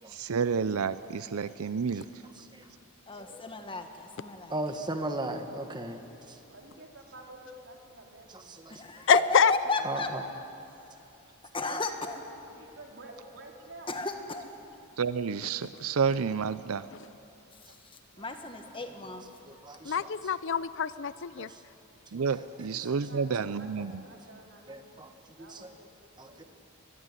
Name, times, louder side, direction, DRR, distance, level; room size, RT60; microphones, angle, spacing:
voice 1, 0.1-2.2 15.0-16.9 22.1-24.0, right 6 dB, 75° right, 14 dB, 0.5 m, -30 dB
voice 2, 3.1-4.5 8.7-10.1 10.8-10.9 11.5-12.2 13.9-14.5 18.2-19.2, left 3 dB, 25° left, 6 dB, 1.6 m, -33 dB
voice 3, 4.5-6.0 6.3-6.4 8.3-8.8 9.8-10.2 11.7-11.8 19.5-20.1 21.4-21.6 22.1-22.2 24.7-25.1 25.4-25.7 26.2-26.4, right 1 dB, 20° right, 6 dB, 1.5 m, -37 dB
voice 4, 6.5-8.6 12.5-13.9 18.1-18.4 22.3-22.4 22.8-25.0 25.3-25.9 26.2-26.4, right 1 dB, 55° right, 1 dB, 3.7 m, -50 dB
voice 5, 9.1-9.5 19.8-21.5, left 7 dB, 55° left, 16 dB, 0.6 m, -25 dB
23.5 x 20.5 x 9.8 m, 2.8 s
head